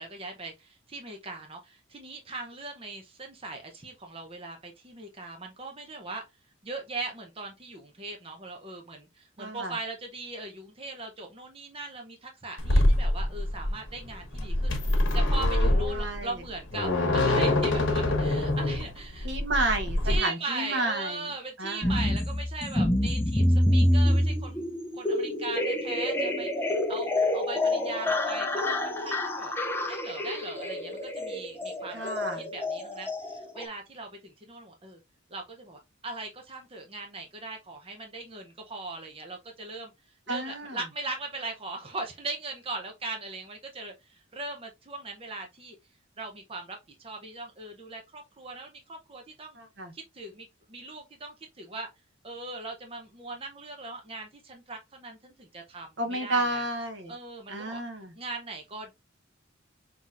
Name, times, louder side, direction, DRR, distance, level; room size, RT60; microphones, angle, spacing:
voice 1, 0.0-6.2 6.6-19.3 20.0-24.7 24.9-26.5 26.9-29.5 29.8-32.0 32.4-35.0 35.3-39.9 40.3-45.8 46.2-49.6 49.9-51.9 52.2-56.7 57.1-57.8 58.2-58.9, right 3 dB, 30° right, 0.7 m, -39 dB
voice 2, 9.4-9.7 15.9-16.3 19.2-21.2 21.6-21.9 31.9-32.5 40.3-40.8 49.6-49.9 56.0-57.1 57.5-58.1, right 2 dB, 60° right, 1.0 m, -31 dB
sound 1, 12.6-20.2, left 1 dB, 70° left, 1.3 m, -25 dB
sound 2, 21.8-33.7, left 1 dB, 10° left, 0.5 m, -27 dB
5.6 x 2.9 x 2.5 m
head